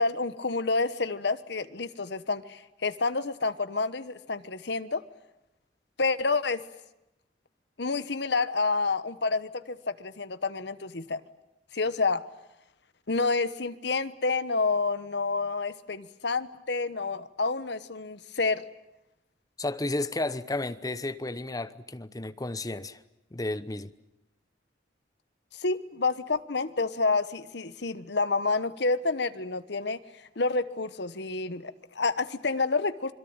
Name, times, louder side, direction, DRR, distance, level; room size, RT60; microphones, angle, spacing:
voice 1, 0.0-5.0 6.0-6.6 7.8-11.2 11.7-12.2 13.1-18.6 25.5-30.0 30.4-33.1, left 3 dB, 65° left, 1.2 m, -29 dB
voice 2, 19.6-23.0 23.3-23.9, left 2 dB, 20° left, 0.9 m, -32 dB
27.0 x 22.5 x 8.9 m
head